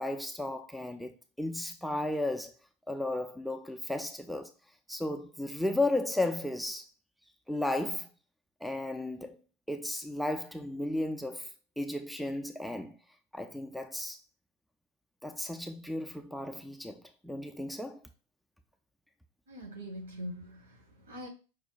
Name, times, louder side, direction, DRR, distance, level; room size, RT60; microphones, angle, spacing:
voice 1, 0.0-2.5 2.9-4.5 4.9-6.9 7.5-8.1 8.6-9.4 9.7-11.5 11.8-13.0 13.3-14.2 15.2-18.0, left 1 dB, ahead, 0.4 m, -34 dB
voice 2, 19.5-21.3, equal, 65° right, 1.3 m, -43 dB
5.4 x 2.2 x 4.0 m
figure-of-eight pair, 90°, 0 cm